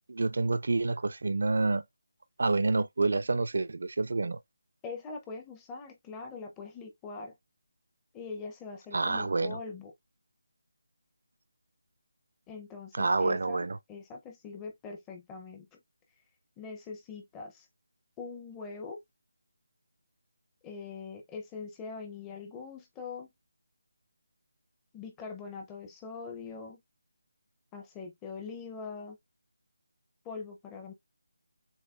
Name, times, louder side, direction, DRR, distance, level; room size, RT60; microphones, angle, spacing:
voice 1, 0.1-1.8 2.4-4.4 8.9-9.6 12.9-13.8, right 3 dB, 60° right, 0.3 m, -28 dB
voice 2, 4.8-7.3 8.1-9.9 12.5-15.7 16.6-17.7 18.2-19.0 20.6-23.3 24.9-26.8 27.7-29.2 30.2-30.9, left 4 dB, 10° left, 0.5 m, -42 dB
7.0 x 2.6 x 2.3 m
figure-of-eight pair, 175°, 0 cm